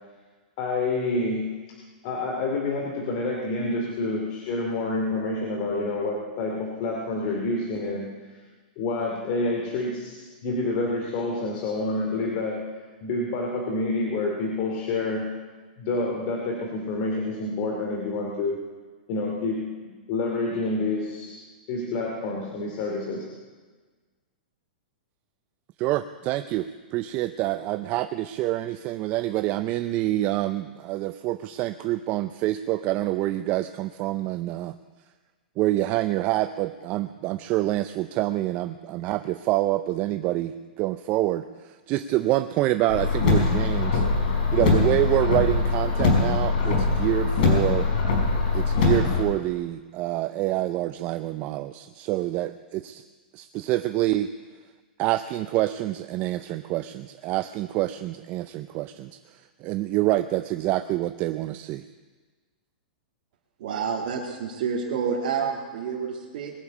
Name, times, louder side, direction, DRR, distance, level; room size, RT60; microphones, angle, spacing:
voice 1, 0.6-1.6 2.0-8.1 8.8-12.7 13.0-15.3 15.8-18.6 19.1-21.4 21.7-23.3, left 2 dB, 45° left, -1 dB, 2.5 m, -28 dB
voice 2, 25.8-34.7 35.6-44.0 44.5-47.9 48.5-53.0 53.3-54.3 55.0-61.8, right 15 dB, 35° right, 10 dB, 0.5 m, -27 dB
Car, 42.9-49.2, left 4 dB, 65° left, 4.7 m, -22 dB
voice 3, 63.6-66.5, right 6 dB, 60° right, -4 dB, 2.2 m, -29 dB
21.0 x 7.0 x 8.4 m, 1.4 s
hypercardioid pair, 145°, 5 cm